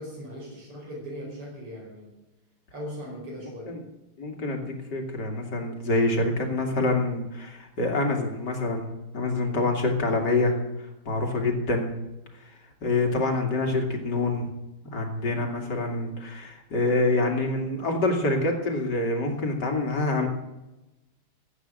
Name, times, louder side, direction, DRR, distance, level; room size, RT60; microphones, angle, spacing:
voice 1, 0.0-2.1 2.7-3.7, equal, 80° right, -2 dB, 5.8 m, -39 dB
voice 2, 4.2-8.9 9.1-10.6 11.1-11.9 12.8-14.5 14.8-20.3, left 2 dB, 50° left, 3 dB, 2.9 m, -26 dB
15.5 x 8.7 x 7.7 m, 0.99 s
omnidirectional pair, 2.4 m